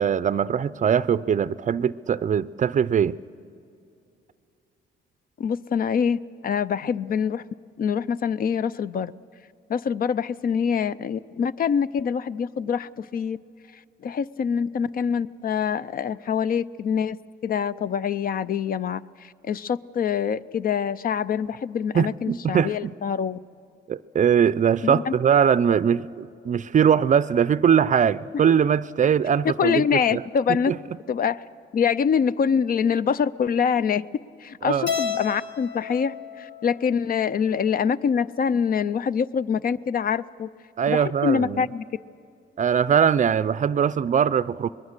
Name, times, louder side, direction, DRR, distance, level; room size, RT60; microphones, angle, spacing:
voice 1, 0.0-3.2 21.9-22.9 23.9-30.2 30.5-30.8 34.6-34.9 40.8-41.6 42.6-44.7, right 8 dB, 40° right, 0.4 m, -21 dB
voice 2, 5.4-7.4 7.8-9.1 9.7-13.4 14.0-23.4 24.8-25.1 29.4-30.7 31.1-31.4 31.7-34.0 34.4-40.5 40.9-41.8, left 7 dB, 45° left, 0.4 m, -25 dB
Keyboard (musical), 34.9-37.2, left 6 dB, 65° left, 1.7 m, -32 dB
24.5 x 20.5 x 6.6 m
cardioid pair, 90°, 20 cm